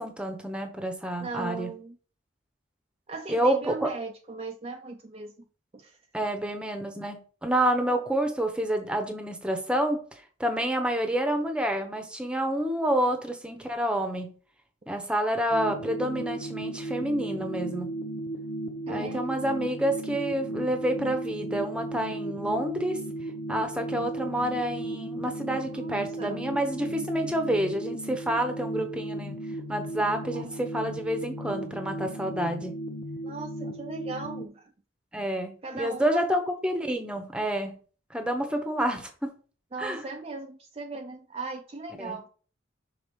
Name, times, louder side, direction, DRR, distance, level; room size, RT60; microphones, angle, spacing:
voice 1, 0.0-1.7 3.3-3.9 6.1-14.3 14.9-17.9 18.9-23.0 23.5-29.4 29.7-32.8 35.1-37.8 38.1-39.4 39.8-40.0 42.0-42.2, right 1 dB, 5° right, 1.0 m, -28 dB
voice 2, 1.2-2.0 3.1-5.3 5.7-6.0 18.9-19.3 25.7-26.4 30.3-30.5 33.2-34.7 35.6-36.3 39.7-42.3, right 3 dB, 30° right, 0.5 m, -38 dB
sound 1, 15.5-34.5, right 1 dB, 80° left, 0.8 m, -35 dB
6.0 x 4.1 x 5.2 m
head